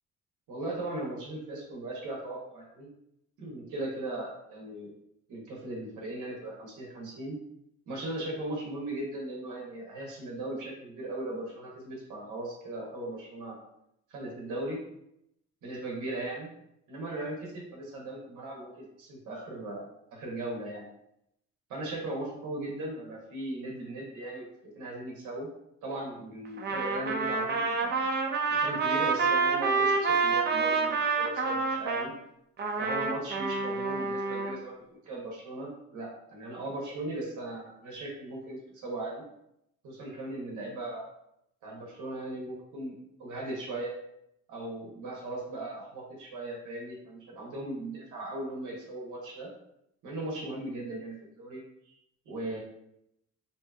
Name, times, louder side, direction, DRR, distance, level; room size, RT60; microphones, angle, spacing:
voice 1, 0.5-2.9 3.4-4.9 5.3-7.4 7.9-13.6 14.1-14.8 15.6-16.5 16.9-20.9 21.7-25.5 25.8-28.1 28.5-32.1 32.8-34.7 35.0-39.2 39.8-41.1 41.6-43.9 44.5-49.5 50.0-51.9 52.3-52.6, right 1 dB, 80° right, -2 dB, 0.7 m, -38 dB
Trumpet, 26.6-32.1 32.6-34.5, right 4 dB, 35° right, 0.4 m, -28 dB
2.6 x 2.3 x 2.2 m, 0.79 s
cardioid pair, 90°, 30 cm